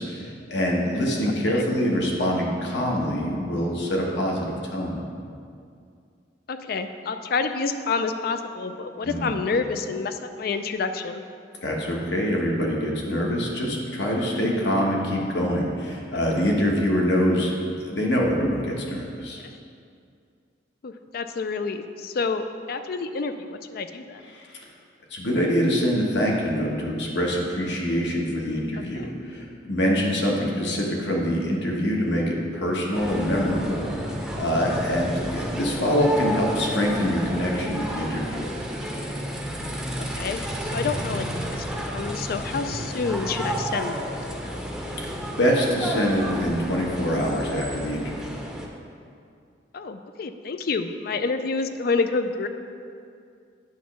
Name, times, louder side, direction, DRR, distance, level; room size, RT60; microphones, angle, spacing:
voice 1, 0.0-5.0 9.0-9.3 11.6-17.5 17.8-19.4 24.3-24.5 25.1-33.9 34.3-38.6 45.4-48.2, equal, 75° left, -2 dB, 1.2 m, -25 dB
voice 2, 6.5-11.2 16.3-16.4 19.4-19.5 20.8-24.2 28.9-29.1 35.2-35.4 40.0-40.4 40.7-44.6 49.7-52.5, left 4 dB, 60° left, 8 dB, 0.4 m, -29 dB
sound 1, 32.9-48.7, equal, 5° right, 0.6 m, -32 dB
9.0 x 3.1 x 6.0 m, 2.3 s
head